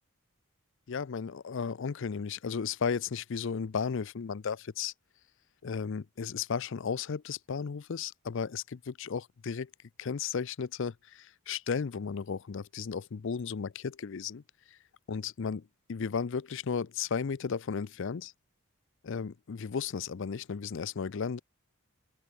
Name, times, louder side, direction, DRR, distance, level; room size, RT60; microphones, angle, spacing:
voice 1, 0.9-4.9 5.6-9.7 10.0-14.4 14.7-14.8 15.1-15.6 15.9-18.3 19.0-21.4, left 6 dB, 60° left, 0.5 m, -34 dB
open air
head